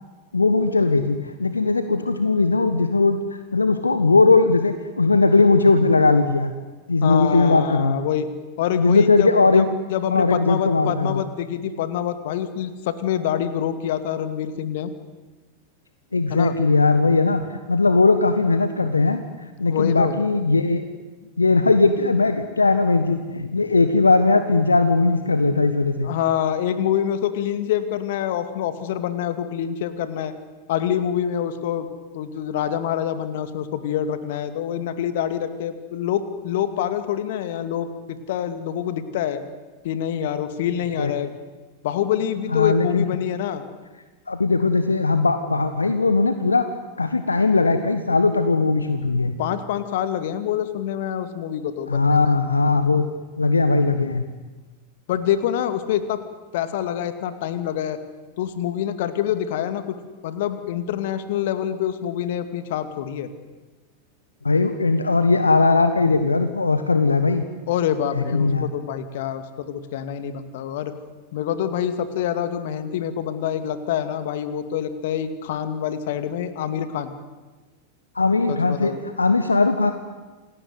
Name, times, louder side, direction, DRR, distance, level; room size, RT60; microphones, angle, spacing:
voice 1, 0.3-6.5 6.9-8.0 8.8-9.7 10.1-11.2 16.1-19.2 19.6-20.8 21.4-26.1 41.0-41.1 42.5-43.1 44.3-46.7 47.0-49.4 51.9-53.1 53.4-54.3 64.4-67.4 68.1-68.7 78.1-79.9, left 3 dB, 80° left, 9 dB, 1.3 m, -19 dB
voice 2, 7.0-8.3 8.6-14.9 16.3-16.6 19.6-20.2 26.0-30.3 30.7-31.9 32.1-39.4 39.8-41.3 41.8-43.6 49.4-52.2 55.1-56.2 56.5-58.0 58.4-60.0 60.2-63.3 67.7-70.9 71.3-77.1 78.5-79.0, left 10 dB, 55° left, 11 dB, 2.4 m, -26 dB
28.0 x 19.5 x 9.6 m, 1.2 s
figure-of-eight pair, 90°, 0 cm